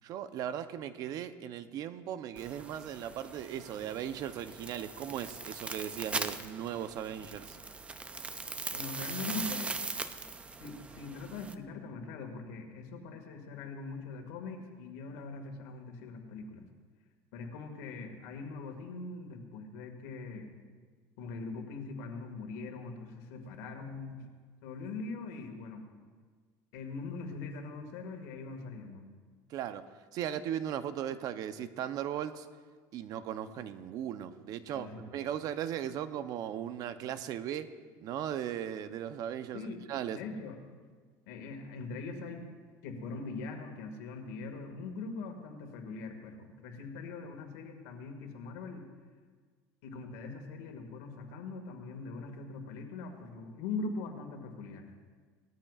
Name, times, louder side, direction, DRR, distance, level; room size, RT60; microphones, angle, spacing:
voice 1, 0.0-7.6 29.5-32.5 32.9-40.2, right 10 dB, 55° right, 11 dB, 0.7 m, -38 dB
sound 1, 2.4-11.5, right 4 dB, 15° right, 0.5 m, -41 dB
voice 2, 8.7-9.8 10.5-16.7 17.3-20.5 21.2-24.3 24.6-25.9 26.7-29.1 34.7-35.0 39.5-40.6 41.3-42.5 42.8-48.9 49.8-54.9, left 3 dB, 90° left, 4 dB, 1.9 m, -42 dB
19.5 x 13.5 x 2.4 m, 1.5 s
cardioid pair, 135°, 8 cm